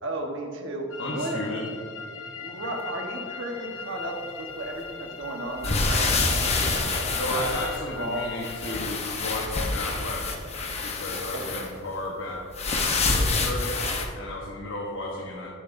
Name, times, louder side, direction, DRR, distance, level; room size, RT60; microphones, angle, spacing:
voice 1, 0.0-1.4 2.4-7.5 7.9-8.3 11.3-11.6, right 2 dB, 60° right, 2 dB, 1.2 m, -34 dB
sound 1, 0.9-8.8, left 5 dB, 85° left, 1.0 m, -39 dB
voice 2, 1.0-1.6 7.1-12.5 12.8-13.7 14.1-15.5, left 1 dB, 60° left, -3 dB, 1.2 m, -34 dB
sound 2, 5.6-8.1 8.4-11.7 12.5-14.0, left 3 dB, 30° left, 0.9 m, -27 dB
12.5 x 8.7 x 2.6 m, 2.2 s
head